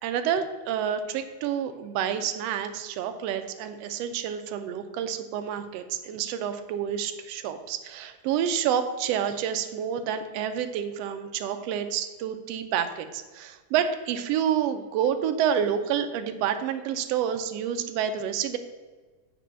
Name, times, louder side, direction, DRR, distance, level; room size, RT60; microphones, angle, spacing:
voice 1, 0.0-18.6, right 9 dB, 80° right, 8 dB, 1.4 m, -28 dB
7.6 x 5.1 x 6.7 m, 1.4 s
omnidirectional pair, 3.5 m